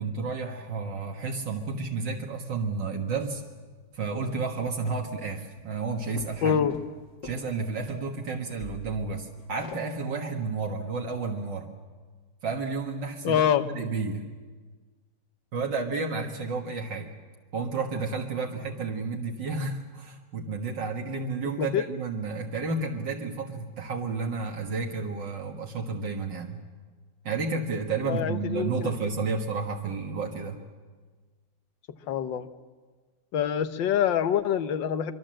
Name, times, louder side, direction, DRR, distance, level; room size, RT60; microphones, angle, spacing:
voice 1, 0.0-3.4 3.9-6.6 7.2-11.7 12.4-14.3 15.5-17.1 17.5-26.6 27.2-30.6, right 4 dB, 75° right, 2 dB, 2.3 m, -31 dB
sound 1, 1.8-1.9 3.9-4.0 4.2-4.4 4.7-5.3 5.6-8.0 8.3-9.8, left 3 dB, 70° left, 2.7 m, -44 dB
voice 2, 6.4-6.8 13.2-13.7 21.6-21.8 28.1-28.9 32.1-32.5 33.3-35.1, left 9 dB, 90° left, 11 dB, 1.7 m, -25 dB
24.5 x 24.0 x 7.7 m, 1.4 s
omnidirectional pair, 1.9 m